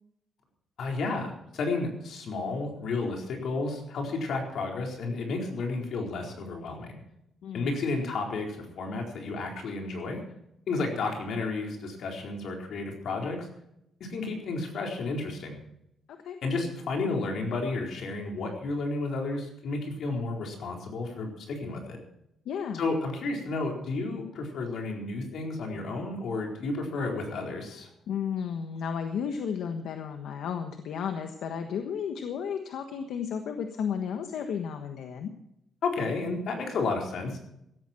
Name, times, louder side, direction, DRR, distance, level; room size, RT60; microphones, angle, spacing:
voice 1, 0.8-7.0 7.5-10.2 10.7-13.5 14.0-15.6 16.4-22.0 22.7-27.9 35.8-37.4, left 3 dB, 60° left, 1 dB, 4.3 m, -32 dB
voice 2, 7.4-7.9 16.1-16.4 22.4-22.9 28.1-35.3, left 7 dB, 75° left, 6 dB, 1.3 m, -33 dB
17.0 x 13.5 x 4.5 m, 0.80 s
cardioid pair, 180°, 0 cm